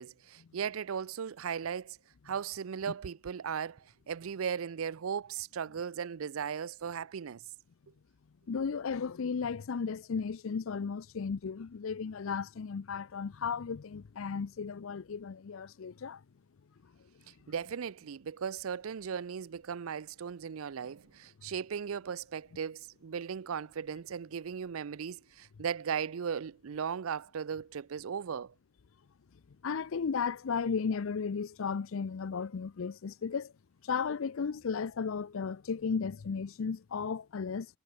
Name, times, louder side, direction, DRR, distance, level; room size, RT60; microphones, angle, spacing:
voice 1, 0.0-2.0 2.3-7.4 17.5-28.5, right 7 dB, 80° right, 0.5 m, -37 dB
voice 2, 8.5-16.2 29.6-33.5 33.8-37.7, left 5 dB, 70° left, 0.5 m, -34 dB
head